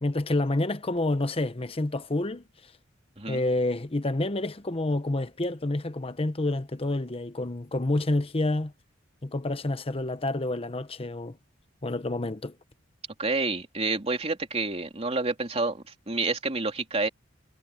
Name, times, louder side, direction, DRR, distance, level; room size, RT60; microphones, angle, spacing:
voice 1, 0.0-2.4 3.3-8.7 9.2-11.4 11.8-12.5, left 2 dB, 30° left, 0.9 m, -28 dB
voice 2, 13.2-17.1, right 3 dB, 30° right, 2.9 m, -29 dB
head